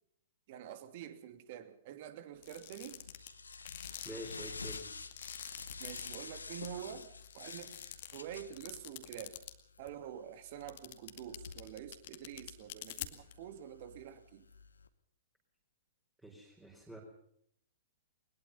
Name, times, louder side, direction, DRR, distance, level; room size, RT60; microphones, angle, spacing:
voice 1, 0.5-3.0 5.8-7.8 8.1-9.4 9.8-14.5, right 10 dB, 45° right, 9 dB, 2.7 m, -47 dB
sound 1, 2.4-6.2 6.6-6.7 7.0-9.5 9.9-10.0 10.6-13.3, left 14 dB, 45° left, 2.2 m, -46 dB
sound 2, 2.5-14.9, left 4 dB, 75° left, 1.6 m, -50 dB
voice 2, 4.0-4.8 16.2-17.0, equal, 5° right, -1 dB, 4.9 m, -47 dB
22.0 x 21.0 x 5.6 m, 0.69 s
figure-of-eight pair, 110°, 0 cm